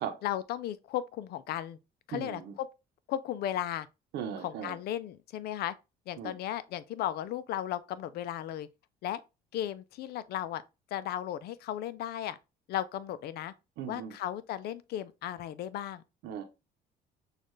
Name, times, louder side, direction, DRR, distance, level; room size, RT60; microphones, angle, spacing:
voice 1, 0.2-1.8 2.1-2.7 3.1-3.9 4.4-5.7 6.1-8.7 9.0-9.2 9.5-10.6 10.9-12.4 12.7-13.5 13.9-16.0, left 11 dB, 70° left, 0.5 m, -35 dB
voice 2, 2.1-2.6 4.1-4.8 6.2-6.3 13.8-14.1 16.2-16.4, right 8 dB, 85° right, 0.8 m, -37 dB
6.4 x 2.5 x 3.1 m
cardioid pair, 110°, 17 cm